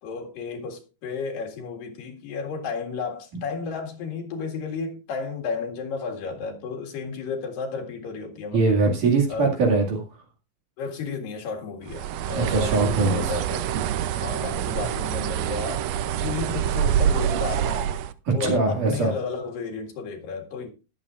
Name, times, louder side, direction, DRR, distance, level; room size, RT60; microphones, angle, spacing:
voice 1, 0.0-8.6 9.3-9.5 10.8-15.9 16.2-17.9 18.3-20.7, left 5 dB, 90° left, 3.7 m, -32 dB
voice 2, 8.5-10.0 12.4-13.4 18.4-19.1, right 3 dB, 70° right, 3.7 m, -22 dB
Bird, 11.9-18.1, right 9 dB, 85° right, 1.5 m, -26 dB
20.0 x 8.3 x 2.5 m
omnidirectional pair, 3.9 m